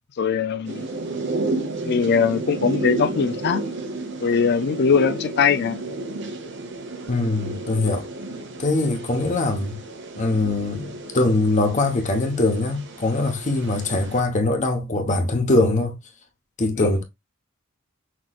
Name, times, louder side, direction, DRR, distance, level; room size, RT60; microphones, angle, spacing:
voice 1, 0.2-0.8 1.8-3.6 4.2-5.8, left 6 dB, 55° left, 0.4 m, -21 dB
sound 1, 0.6-14.2, right 2 dB, 65° right, 1.0 m, -32 dB
voice 2, 7.1-8.1 8.6-9.8 10.2-16.0 16.6-17.0, left 2 dB, 40° left, 1.0 m, -22 dB
6.0 x 3.1 x 2.3 m
head